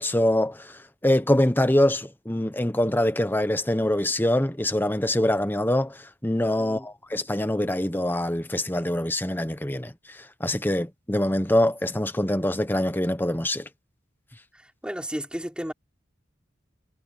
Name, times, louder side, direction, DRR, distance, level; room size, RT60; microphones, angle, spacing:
voice 1, 0.0-9.9 10.4-13.6, left 1 dB, 10° left, 1.1 m, -24 dB
voice 2, 14.5-15.7, equal, 5° right, 5.5 m, -34 dB
head